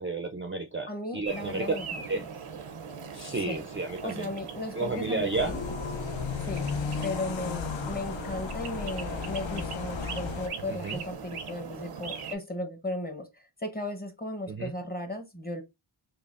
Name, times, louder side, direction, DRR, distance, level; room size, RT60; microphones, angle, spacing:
voice 1, 0.0-1.8 2.1-2.2 3.1-4.3 4.7-5.5 10.7-11.0 14.5-14.7, right 3 dB, 25° right, 0.4 m, -32 dB
voice 2, 0.9-2.3 3.5-3.6 4.0-5.6 6.4-6.7 7.0-15.6, left 1 dB, 20° left, 0.8 m, -36 dB
sound 1, 1.2-12.4, right 6 dB, 85° right, 0.7 m, -41 dB
sound 2, 5.3-10.5, left 6 dB, 65° left, 0.6 m, -34 dB
5.4 x 2.1 x 2.4 m
wide cardioid pair, 55°, 50 cm